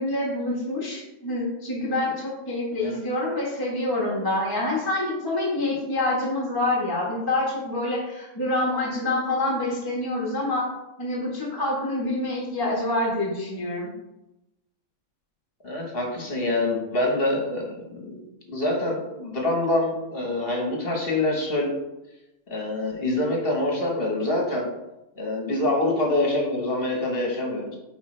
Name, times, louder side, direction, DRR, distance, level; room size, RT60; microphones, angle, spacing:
voice 1, 0.0-10.6 11.0-13.9, left 2 dB, 15° left, -4 dB, 1.3 m, -26 dB
voice 2, 15.6-18.2 18.4-21.7 22.5-24.7 25.1-27.8, left 2 dB, 45° left, -1 dB, 1.6 m, -25 dB
8.1 x 4.2 x 3.3 m, 0.94 s
omnidirectional pair, 1.4 m